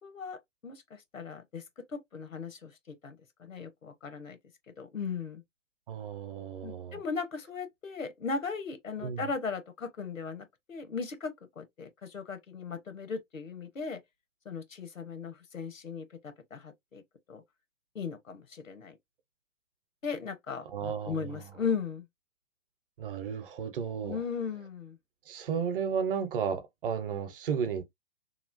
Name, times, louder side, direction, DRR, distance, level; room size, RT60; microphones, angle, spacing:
voice 1, 0.0-1.6 1.9-4.4 4.8-5.4 6.6-14.0 14.4-17.0 17.3-17.4 17.9-18.9 20.0-22.1 24.0-25.0, left 5 dB, 90° left, 0.9 m, -37 dB
voice 2, 5.9-7.0 9.0-9.3 20.7-21.5 23.0-24.2 25.3-27.8, right 7 dB, 45° right, 0.8 m, -33 dB
3.1 x 2.4 x 2.5 m
figure-of-eight pair, 125°, 39 cm